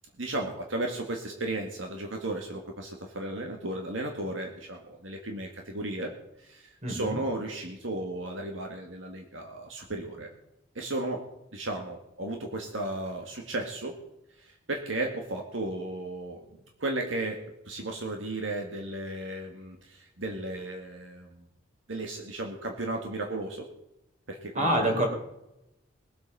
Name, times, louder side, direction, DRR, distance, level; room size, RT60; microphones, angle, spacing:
voice 1, 0.2-6.1 6.4-10.3 10.8-14.0 14.4-16.5 16.8-21.5 21.9-23.7 24.3-25.0, right 2 dB, 75° right, 2 dB, 2.0 m, -35 dB
voice 2, 6.8-7.2 24.5-25.1, right 1 dB, 40° right, 1 dB, 4.5 m, -26 dB
21.5 x 8.2 x 5.6 m, 0.87 s
head